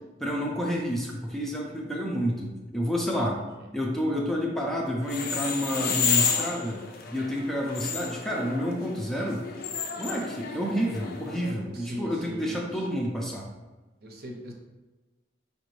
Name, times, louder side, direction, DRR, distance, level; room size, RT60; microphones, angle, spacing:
voice 1, 0.2-3.4 3.7-6.8 7.1-9.5 10.0-13.5, equal, ahead, -2 dB, 0.4 m, -29 dB
sound 1, 5.0-11.5, left 6 dB, 55° left, 0.5 m, -31 dB
voice 2, 11.8-12.7 14.0-14.5, equal, 60° right, 1 dB, 0.7 m, -39 dB
4.9 x 2.5 x 3.1 m, 1.2 s
head